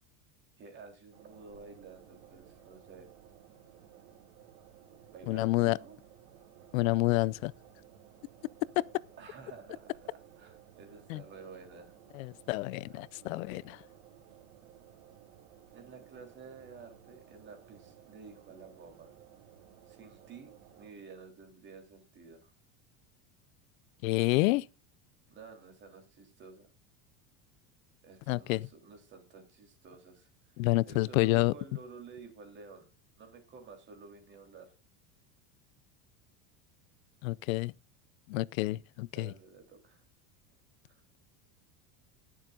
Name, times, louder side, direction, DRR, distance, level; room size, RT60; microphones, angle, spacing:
voice 1, 0.6-3.1 5.1-6.0 9.2-12.0 15.7-19.1 19.9-22.5 25.3-26.7 28.0-30.3 30.9-32.9 33.2-34.7 39.1-40.0 40.9-41.0, right 5 dB, 25° right, 3.4 m, -51 dB
sound 1, 1.1-20.9, right 10 dB, 75° right, 3.3 m, -57 dB
voice 2, 5.3-5.8 6.7-7.5 8.8-8.9 11.1-11.2 12.1-13.8 24.0-24.7 28.3-28.7 30.6-31.5 37.2-37.7 38.3-39.3, left 19 dB, 80° left, 0.6 m, -28 dB
21.5 x 7.4 x 2.5 m
cardioid pair, 170°, 40 cm